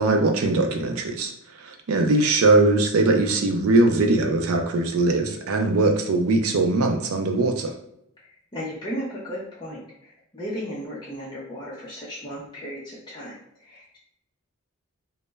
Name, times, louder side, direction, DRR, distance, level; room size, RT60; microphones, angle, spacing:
voice 1, 0.0-1.3 1.6-7.7, right 2 dB, 70° right, 4 dB, 0.4 m, -21 dB
voice 2, 8.5-13.3 13.6-14.0, equal, 20° left, -8 dB, 0.4 m, -35 dB
2.0 x 2.0 x 3.3 m, 0.76 s
head